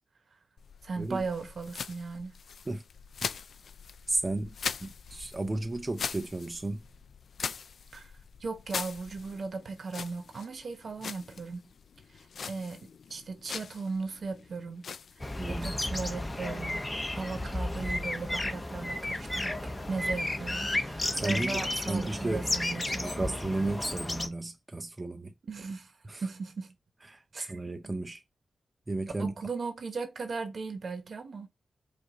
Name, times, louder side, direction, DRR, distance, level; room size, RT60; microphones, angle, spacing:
sound 1, 0.6-17.9, left 6 dB, 75° left, 0.3 m, -42 dB
voice 1, 0.8-2.4 7.9-8.1 8.4-11.7 12.5-16.9 17.2-23.3 25.5-25.9 26.2-26.7 27.3-27.9 29.2-31.5, right 4 dB, 65° right, 1.1 m, -37 dB
voice 2, 4.1-4.6 4.8-6.8 15.4-15.8 21.1-22.5 23.0-25.3 26.1-26.2 27.1-28.2 28.9-29.3, right 2 dB, 30° right, 0.5 m, -34 dB
sound 2, 15.2-24.3, left 1 dB, 25° left, 0.8 m, -33 dB
5.0 x 2.5 x 3.7 m
cardioid pair, 65°, 0 cm